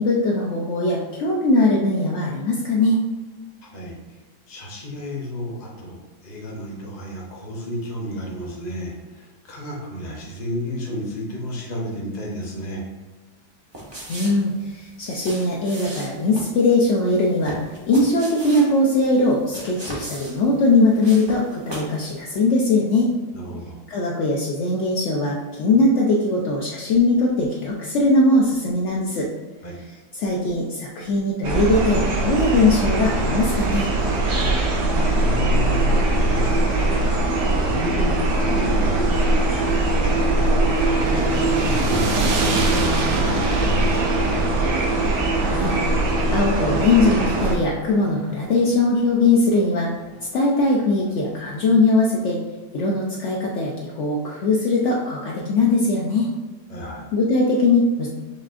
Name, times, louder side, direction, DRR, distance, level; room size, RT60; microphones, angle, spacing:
voice 1, 0.0-3.0 14.1-17.6 17.9-23.1 23.9-29.3 30.2-33.9 45.4-45.8 46.3-49.9 50.3-52.4 52.7-56.3 57.1-58.1, left 2 dB, 80° left, -3 dB, 0.6 m, -20 dB
voice 2, 3.6-4.2 4.5-12.8 23.3-23.8 29.6-29.8 34.3-34.5 35.1-40.5 40.9-44.2 56.7-57.1, equal, 35° left, -2 dB, 0.7 m, -32 dB
sound 1, 13.7-22.0 22.3-22.4, right 1 dB, 40° right, 0.3 m, -38 dB
sound 2, 31.4-47.5, right 2 dB, 85° right, 1.6 m, -21 dB
sound 3, 40.5-48.7, right 2 dB, 65° right, 0.7 m, -29 dB
6.2 x 2.4 x 2.4 m, 1.3 s
omnidirectional pair, 1.8 m